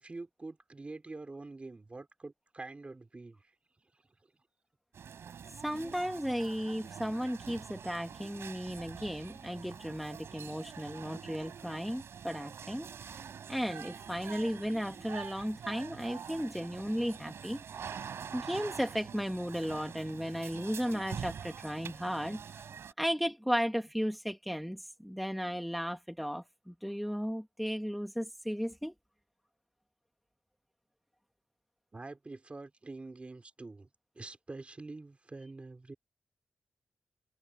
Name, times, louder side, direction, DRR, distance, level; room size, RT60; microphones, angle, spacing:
voice 1, 0.0-3.5 3.9-4.0 31.9-33.9 34.1-36.0, right 3 dB, 30° right, 4.0 m, -46 dB
sound 1, 4.9-22.9, right 7 dB, 80° right, 4.1 m, -45 dB
voice 2, 5.6-13.2 13.5-22.6 23.0-28.9, equal, ahead, 1.3 m, -35 dB
wide cardioid pair, 100°, 4 cm